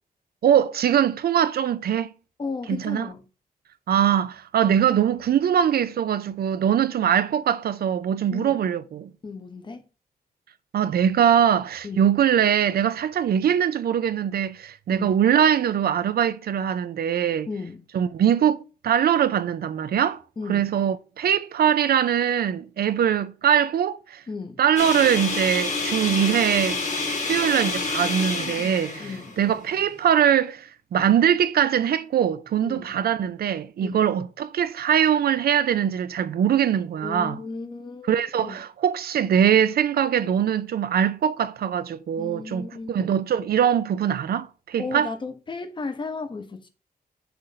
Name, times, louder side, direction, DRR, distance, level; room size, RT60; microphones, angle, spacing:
voice 1, 0.4-2.1 2.7-3.1 3.9-9.1 10.7-17.5 17.9-18.6 18.8-20.2 20.5-24.2 24.6-26.8 27.2-29.1 29.4-37.4 38.1-45.1, right 9 dB, 80° right, 0.5 m, -22 dB
voice 2, 2.4-3.2 8.3-8.6 9.2-9.9 11.8-12.1 14.9-15.2 17.5-17.8 20.4-20.7 24.3-24.6 29.0-29.3 32.6-33.0 33.8-34.1 37.0-38.6 42.2-43.1 44.8-46.7, left 4 dB, 30° left, 0.8 m, -34 dB
sound 1, 24.8-29.9, left 3 dB, 50° left, 1.7 m, -28 dB
6.8 x 2.6 x 5.6 m
wide cardioid pair, 165°, 16 cm